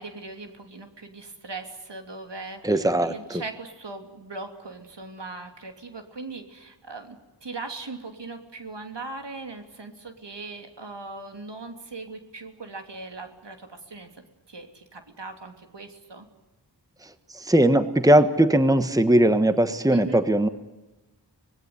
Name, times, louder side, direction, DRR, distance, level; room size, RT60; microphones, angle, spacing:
voice 1, 0.0-16.3 19.9-20.2, right 3 dB, 75° right, 6 dB, 3.1 m, -39 dB
voice 2, 2.6-3.4 17.0-20.5, right 1 dB, 10° right, 10 dB, 1.4 m, -20 dB
25.5 x 19.5 x 9.5 m, 1.1 s
wide cardioid pair, 70°, 42 cm